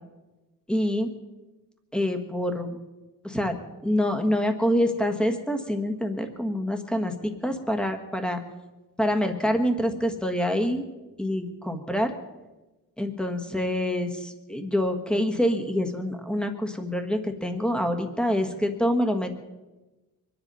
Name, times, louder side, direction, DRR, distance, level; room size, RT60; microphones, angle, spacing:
voice 1, 0.7-1.1 1.9-2.8 3.2-8.4 9.0-10.8 11.2-12.1 13.0-19.3, equal, 5° left, 5 dB, 1.5 m, -26 dB
24.0 x 10.5 x 5.5 m, 1.1 s
cardioid pair, 165°, 35 cm